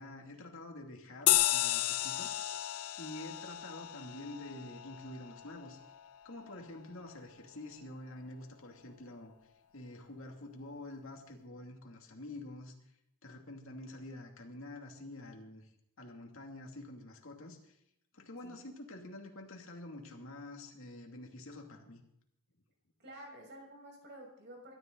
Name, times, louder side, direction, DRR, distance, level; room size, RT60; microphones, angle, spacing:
voice 1, 0.0-2.6 3.0-5.8 6.2-9.3 9.7-12.7 13.2-15.7 16.0-17.8 18.1-22.0, left 1 dB, 60° left, 2 dB, 2.6 m, -47 dB
sound 1, 1.3-6.2, left 14 dB, 75° left, 0.6 m, -33 dB
voice 2, 18.4-18.8 23.0-24.7, right 1 dB, 50° right, 0 dB, 6.2 m, -51 dB
22.5 x 13.5 x 4.0 m, 0.76 s
head